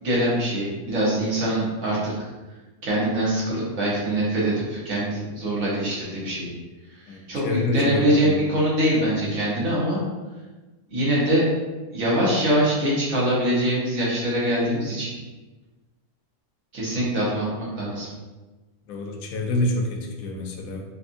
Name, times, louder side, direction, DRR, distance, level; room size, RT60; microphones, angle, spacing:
voice 1, 0.0-2.1 2.8-6.5 7.1-10.0 10.9-11.4 11.9-15.1 16.7-17.4 17.8-18.1, right 1 dB, 65° right, -7 dB, 1.6 m, -23 dB
voice 2, 7.1-8.4 18.9-20.8, left 1 dB, 75° left, 2 dB, 1.0 m, -27 dB
4.2 x 2.6 x 2.5 m, 1.2 s
omnidirectional pair, 1.6 m